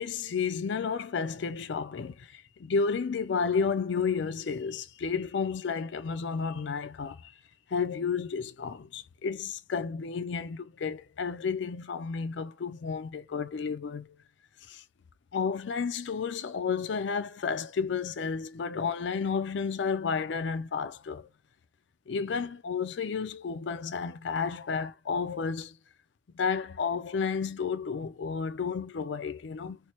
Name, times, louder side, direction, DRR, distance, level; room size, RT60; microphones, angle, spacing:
voice 1, 0.0-7.2 7.7-14.1 14.7-14.8 15.3-21.3 22.1-25.8 26.3-29.8, left 5 dB, 70° left, 0.4 m, -31 dB
4.4 x 2.1 x 2.9 m
head